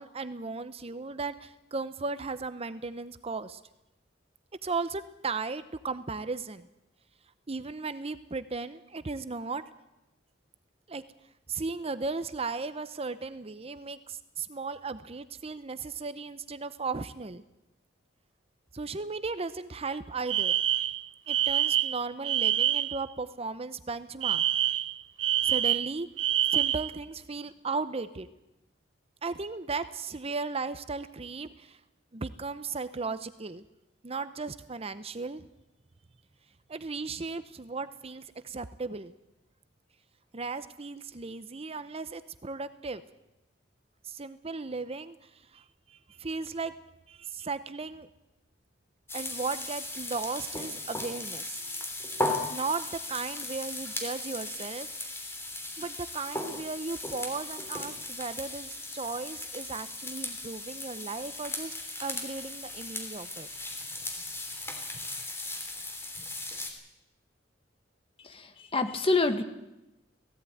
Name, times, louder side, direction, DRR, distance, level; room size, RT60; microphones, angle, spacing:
voice 1, 0.0-3.6 4.6-6.7 7.5-9.6 10.9-11.0 11.5-17.4 18.7-20.5 21.3-24.4 25.4-26.1 26.5-28.3 29.2-31.8 32.1-33.6 34.0-35.4 36.7-39.1 40.3-43.0 44.0-46.7 47.1-48.1 49.1-51.6 52.5-55.2 55.8-61.7 62.0-63.5, right 4 dB, 35° right, 13 dB, 0.7 m, -36 dB
Alarm, 20.3-23.0 24.2-26.9, right 12 dB, 85° right, 0.7 m, -26 dB
sound 1, 49.1-66.7, left 2 dB, 15° left, 3.3 m, -37 dB
voice 2, 68.2-69.4, left 3 dB, 30° left, 8 dB, 1.7 m, -27 dB
17.5 x 16.0 x 9.3 m, 0.94 s
head